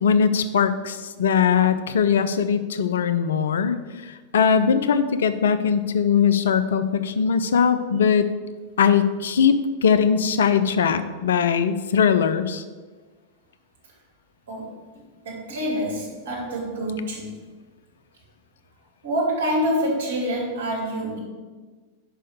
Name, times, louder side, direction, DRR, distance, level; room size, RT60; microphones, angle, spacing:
voice 1, 0.0-3.8 4.3-8.3 8.8-9.6 9.8-12.6, left 7 dB, 65° left, 11 dB, 0.4 m, -20 dB
voice 2, 15.2-17.3 19.0-21.2, equal, 60° right, -3 dB, 2.6 m, -26 dB
5.5 x 5.3 x 6.6 m, 1.3 s
figure-of-eight pair, 90°, 0 cm